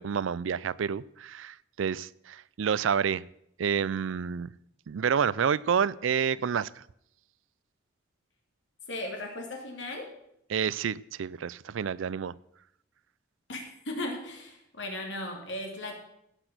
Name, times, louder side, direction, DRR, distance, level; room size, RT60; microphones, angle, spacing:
voice 1, 0.0-3.2 3.6-4.5 4.9-6.8 10.5-12.3, right 7 dB, 90° right, 21 dB, 0.4 m, -29 dB
voice 2, 8.9-10.1 13.5-16.0, left 1 dB, 70° left, 2 dB, 2.9 m, -37 dB
17.0 x 6.2 x 6.0 m, 0.75 s
head